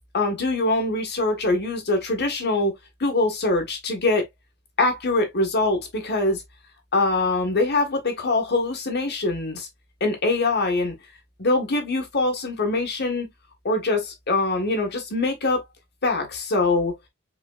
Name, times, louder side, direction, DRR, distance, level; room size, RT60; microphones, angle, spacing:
voice 1, 0.1-2.7 3.0-4.3 4.8-6.4 6.9-9.7 10.0-10.9 11.4-13.3 13.6-15.6 16.0-16.9, left 2 dB, 50° left, 1.5 m, -23 dB
5.5 x 3.9 x 2.4 m
head